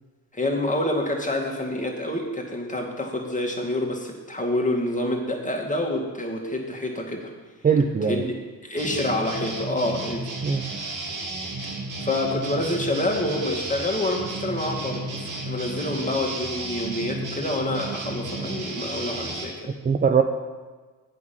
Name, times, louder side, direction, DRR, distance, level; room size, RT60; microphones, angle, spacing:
voice 1, 0.3-7.3 8.0-8.3 8.6-11.0 12.0-19.7, left 1 dB, 15° left, 0 dB, 2.2 m, -27 dB
voice 2, 7.6-8.2 10.4-10.7 19.8-20.2, right 6 dB, 20° right, 5 dB, 0.6 m, -20 dB
sound 1, 8.8-19.4, right 2 dB, 45° right, 2.0 m, -33 dB
8.3 x 5.9 x 7.1 m, 1.4 s
hypercardioid pair, 50°, 44 cm